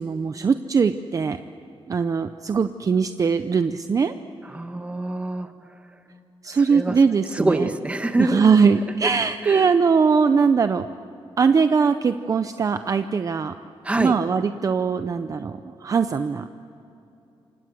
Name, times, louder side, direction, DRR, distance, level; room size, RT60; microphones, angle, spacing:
voice 1, 0.0-1.4 1.9-4.1 6.4-7.7 8.2-10.9 11.4-13.5 13.9-16.5, right 5 dB, 35° right, 9 dB, 0.6 m, -21 dB
voice 2, 4.5-5.5 6.7-6.9 7.3-8.4 9.5-9.7 13.8-14.2, right 2 dB, 15° right, 7 dB, 1.5 m, -25 dB
29.0 x 25.5 x 7.7 m, 2.9 s
wide cardioid pair, 180°, 10 cm